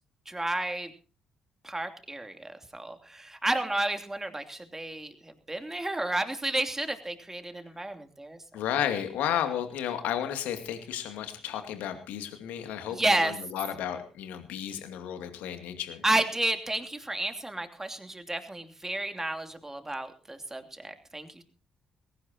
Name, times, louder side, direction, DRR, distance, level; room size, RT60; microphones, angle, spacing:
voice 1, 0.3-0.9 1.6-8.4 12.9-13.3 16.0-21.4, right 2 dB, 15° right, 7 dB, 2.9 m, -31 dB
voice 2, 8.5-16.0, left 10 dB, 65° left, 7 dB, 2.4 m, -33 dB
21.0 x 17.5 x 2.9 m, 0.36 s
figure-of-eight pair, 45°, 3 cm